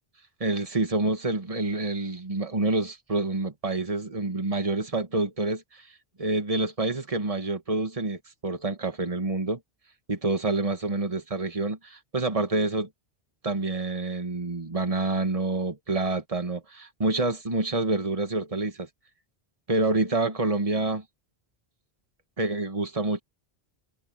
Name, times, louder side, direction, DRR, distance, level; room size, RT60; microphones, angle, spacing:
voice 1, 0.4-5.8 6.2-9.6 10.1-12.9 13.4-18.9 19.7-21.0 22.4-23.2, right 2 dB, 35° right, 1.9 m, -27 dB
omnidirectional pair, 1.0 m